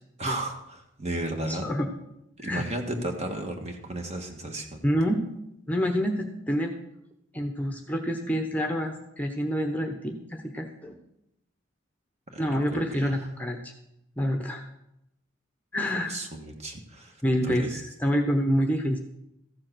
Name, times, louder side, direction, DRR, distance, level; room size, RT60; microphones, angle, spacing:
voice 1, 0.2-1.7 2.4-4.8 12.3-13.1 16.1-17.2 17.4-17.8, right 1 dB, 35° right, 3 dB, 1.6 m, -34 dB
voice 2, 1.5-1.9 2.4-2.6 2.9-3.1 4.8-5.2 5.7-6.7 7.3-10.9 12.4-13.7 14.2-14.6 15.7-16.1 17.2-19.0, equal, 10° left, 4 dB, 0.9 m, -27 dB
14.5 x 7.6 x 6.1 m, 0.83 s
head